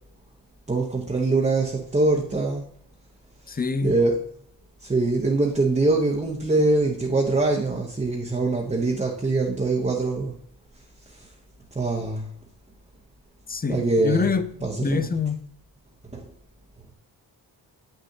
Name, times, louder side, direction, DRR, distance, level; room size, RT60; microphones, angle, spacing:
voice 1, 0.7-2.6 3.8-4.2 4.8-10.4 11.7-12.3 13.7-14.3 14.6-15.1 16.1-16.3, right 2 dB, 15° right, 1.0 m, -23 dB
voice 2, 3.5-4.0 13.5-14.5 14.8-15.4, left 5 dB, 20° left, 0.5 m, -25 dB
8.0 x 6.6 x 2.8 m
wide cardioid pair, 125°, 44 cm